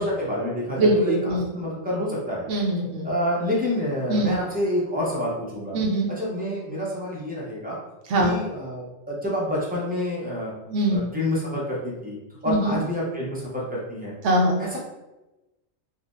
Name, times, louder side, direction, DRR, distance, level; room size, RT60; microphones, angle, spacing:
voice 1, 0.0-1.2 1.5-2.5 3.0-5.8 6.2-7.8 8.2-10.5 10.9-12.2 12.4-14.1 14.6-14.8, left 1 dB, 15° right, -6 dB, 0.4 m, -28 dB
voice 2, 0.8-1.5 2.5-3.1 4.1-4.4 5.7-6.1 8.1-8.4 10.7-11.1 12.5-12.7 14.2-14.6, right 1 dB, 65° right, 0 dB, 1.0 m, -22 dB
3.9 x 2.0 x 2.5 m, 1.0 s
omnidirectional pair, 1.4 m